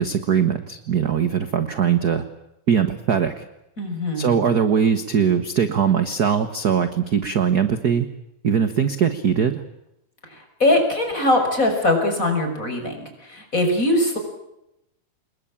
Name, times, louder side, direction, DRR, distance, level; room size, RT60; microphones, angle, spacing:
voice 1, 0.0-2.2 2.7-3.4 4.1-8.1 8.4-9.6, right 7 dB, 50° right, 10 dB, 1.2 m, -21 dB
voice 2, 3.8-4.4 10.6-13.0 13.3-14.2, left 1 dB, 25° left, 4 dB, 6.4 m, -21 dB
27.5 x 21.5 x 8.7 m, 0.85 s
omnidirectional pair, 3.6 m